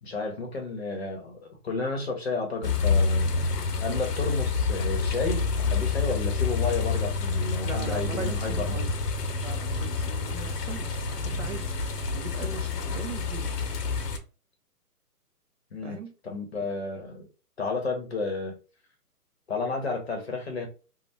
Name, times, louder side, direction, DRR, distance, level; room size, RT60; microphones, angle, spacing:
voice 1, 0.0-3.3 3.8-8.8 15.7-16.0 16.3-17.3 17.6-18.6 19.5-20.7, left 3 dB, 40° left, 0.7 m, -32 dB
sound 1, 2.6-14.2, left 4 dB, 85° left, 0.7 m, -28 dB
voice 2, 7.6-8.9 9.4-13.5 15.8-16.1, right 4 dB, 55° right, 0.5 m, -39 dB
2.6 x 2.0 x 3.3 m
hypercardioid pair, 165°, 47 cm